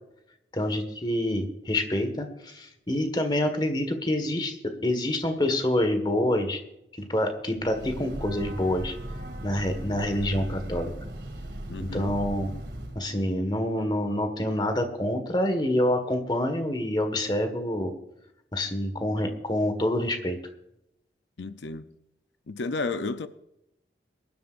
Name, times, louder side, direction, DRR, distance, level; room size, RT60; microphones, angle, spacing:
voice 1, 0.5-4.6 4.8-6.6 6.9-8.9 9.4-10.9 11.9-12.5 13.0-17.9 18.5-20.4, left 1 dB, 25° left, 1.7 m, -27 dB
Breathing / Train, 7.5-13.1, right 1 dB, 80° right, 2.2 m, -38 dB
voice 2, 11.7-12.1 21.4-21.9 22.5-23.3, left 3 dB, 90° left, 0.6 m, -32 dB
22.5 x 12.0 x 2.6 m
head